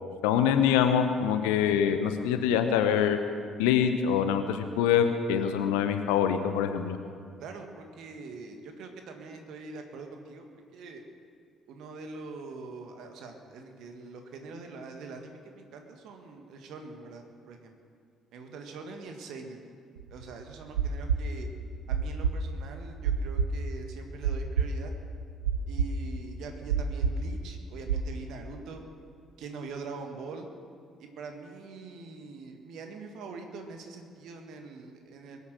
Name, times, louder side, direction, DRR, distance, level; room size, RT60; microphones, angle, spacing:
voice 1, 0.2-3.2 3.6-7.0, left 8 dB, 65° left, 8 dB, 0.9 m, -25 dB
voice 2, 7.4-10.4 10.7-11.0 11.7-17.8 18.3-19.6 20.1-21.5 21.9-24.9 25.7-28.8 29.4-30.5 31.0-35.4, right 4 dB, 55° right, 4 dB, 1.8 m, -43 dB
sound 1, 20.0-28.1, right 6 dB, 75° right, 0.7 m, -29 dB
22.0 x 8.4 x 6.5 m, 2.2 s
figure-of-eight pair, 45°, 0 cm